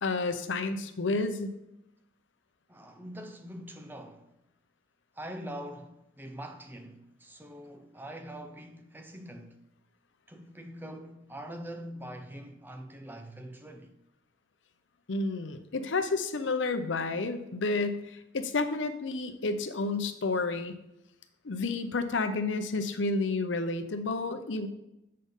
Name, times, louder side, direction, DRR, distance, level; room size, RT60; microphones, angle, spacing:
voice 1, 0.0-1.5 15.1-20.7 21.4-24.7, left 3 dB, 85° left, 0.7 m, -30 dB
voice 2, 2.7-4.3 5.2-9.6 10.3-13.9, equal, 10° right, 0.5 m, -43 dB
7.5 x 3.7 x 5.4 m
head